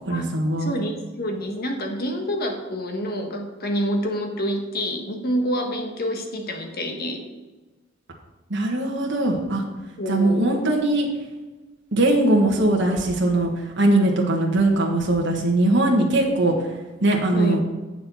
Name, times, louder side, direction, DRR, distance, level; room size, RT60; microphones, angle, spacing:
voice 1, 0.1-0.7 8.5-9.6 10.1-11.1 11.9-13.5 13.8-16.5 17.0-17.6, right 2 dB, 65° right, -1 dB, 1.5 m, -20 dB
voice 2, 0.6-7.2 10.0-10.6 17.3-17.6, equal, 50° left, 3 dB, 1.5 m, -27 dB
8.7 x 7.0 x 5.6 m, 1.2 s
head